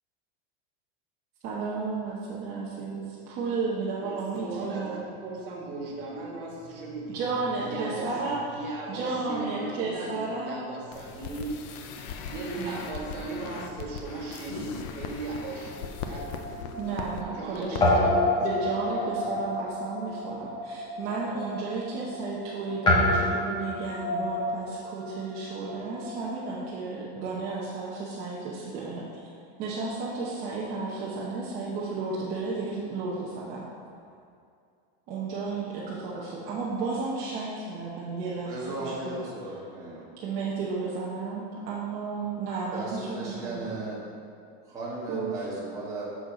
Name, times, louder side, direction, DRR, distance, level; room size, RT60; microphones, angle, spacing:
voice 1, 1.4-5.0 7.1-8.4 8.9-10.6 12.6-12.9 16.8-18.1 18.4-29.1 29.6-33.6 35.1-39.6 40.2-43.7 45.1-45.4, right 4 dB, 30° right, -6 dB, 0.8 m, -33 dB
voice 2, 4.0-7.3 7.5-11.6 12.3-16.8 17.3-19.3, right 3 dB, 65° right, -1 dB, 1.8 m, -38 dB
sound 1, 10.9-17.2 17.5-17.8 18.1-18.2, left 6 dB, 35° left, 0.4 m, -39 dB
Guitar, 15.7-17.5 17.8-26.4, left 1 dB, 15° left, 0.9 m, -29 dB
voice 3, 38.4-40.0 42.7-44.0 44.7-46.0, right 2 dB, 10° right, -7 dB, 1.3 m, -36 dB
6.5 x 6.4 x 5.0 m, 2.4 s
supercardioid pair, 175°, 30 cm